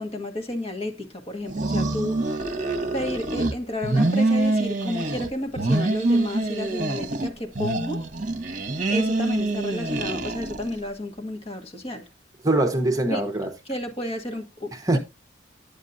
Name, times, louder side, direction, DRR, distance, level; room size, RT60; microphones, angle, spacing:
voice 1, 0.0-2.4 2.9-8.1 8.9-12.1 13.1-13.2 13.7-15.0, left 1 dB, 30° left, 1.3 m, -32 dB
sound 1, 1.5-3.5 3.8-5.3 5.5-7.3 7.5-10.7, right 2 dB, 40° right, 1.2 m, -25 dB
voice 2, 12.4-13.5 14.7-15.0, right 2 dB, 20° right, 1.0 m, -22 dB
9.2 x 8.1 x 2.7 m
head